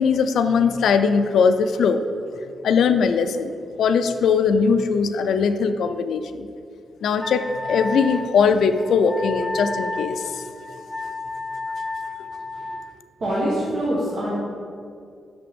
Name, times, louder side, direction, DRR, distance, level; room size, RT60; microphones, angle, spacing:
voice 1, 0.0-2.1 2.6-3.5 3.8-6.5 7.0-10.4, left 5 dB, 75° left, 9 dB, 0.3 m, -20 dB
Wind instrument woodwind instrument, 7.2-12.8, left 2 dB, 10° right, 0.4 m, -32 dB
voice 2, 13.2-14.3, equal, 40° right, -8 dB, 1.2 m, -24 dB
5.9 x 5.9 x 3.5 m, 2.3 s
wide cardioid pair, 175°, 0 cm